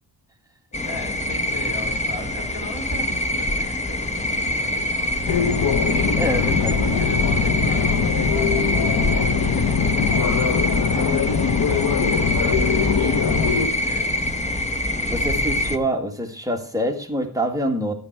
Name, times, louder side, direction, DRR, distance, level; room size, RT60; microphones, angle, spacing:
sound 1, 0.7-15.8, left 1 dB, 15° left, 1.1 m, -25 dB
voice 1, 0.8-5.5 6.4-14.5, left 2 dB, 85° left, 3 dB, 4.7 m, -39 dB
sound 2, 5.3-13.7, left 5 dB, 60° left, 1.2 m, -21 dB
voice 2, 6.2-6.7 15.1-17.9, equal, 10° right, 2 dB, 1.7 m, -25 dB
12.5 x 9.1 x 4.5 m, 0.42 s
wide cardioid pair, 140°, 39 cm